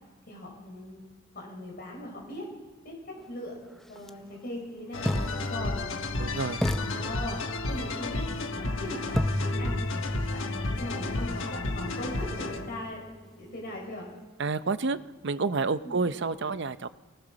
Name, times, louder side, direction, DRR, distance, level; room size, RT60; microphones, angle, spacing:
voice 1, 0.3-1.0 1.3-2.4 2.8-3.5 3.9-5.9 6.8-7.4 7.7-9.1 9.4-9.8 10.3-13.0 13.4-14.1 15.8-16.0, left 1 dB, 45° left, -2 dB, 5.8 m, -39 dB
sound 1, 4.0-4.1 5.1-6.2 6.6-7.9 9.2-13.1, left 1 dB, ahead, 0.5 m, -34 dB
sound 2, 4.9-12.9, left 2 dB, 70° left, 1.4 m, -32 dB
voice 2, 6.2-6.7 14.4-15.0 15.2-16.9, right 4 dB, 60° right, 13 dB, 0.7 m, -29 dB
23.5 x 18.0 x 6.4 m, 1.2 s
head